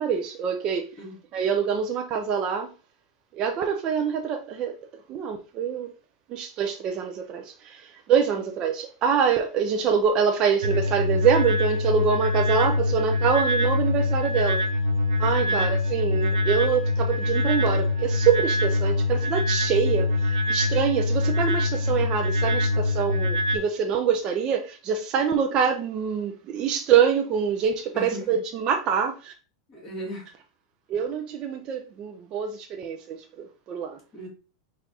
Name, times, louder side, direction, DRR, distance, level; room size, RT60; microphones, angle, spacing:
voice 1, 0.0-0.9 1.3-2.7 3.3-4.8 5.1-5.9 6.3-14.6 15.2-29.3 30.9-34.0, right 7 dB, 30° right, 0.4 m, -25 dB
sound 1, 10.6-23.6, left 2 dB, 80° right, 0.7 m, -24 dB
voice 2, 27.9-28.3 29.7-30.3 34.1-34.3, equal, 20° left, 1.8 m, -37 dB
4.4 x 2.5 x 4.1 m
supercardioid pair, 165°, 3 cm